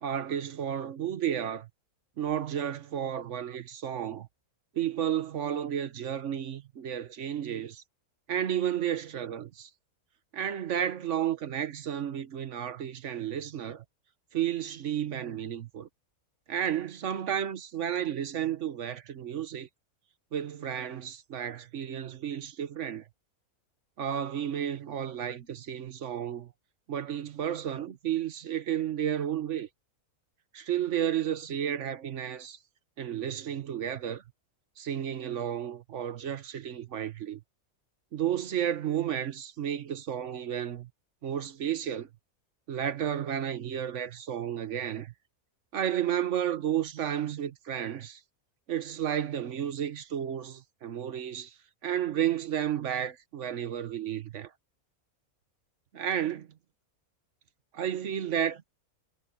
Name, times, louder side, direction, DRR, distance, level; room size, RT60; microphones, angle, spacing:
voice 1, 0.0-1.7 2.2-4.3 4.7-7.8 8.3-9.7 10.3-13.8 14.3-15.9 16.5-19.7 20.3-23.0 24.0-26.5 26.9-29.7 30.5-32.6 33.0-34.2 34.8-37.4 38.1-40.9 41.2-42.1 42.7-45.1 45.7-48.2 48.7-51.5 51.8-54.5 55.9-56.5 57.7-58.6, right 9 dB, 55° right, 1.2 m, -32 dB
omnidirectional pair, 1.5 m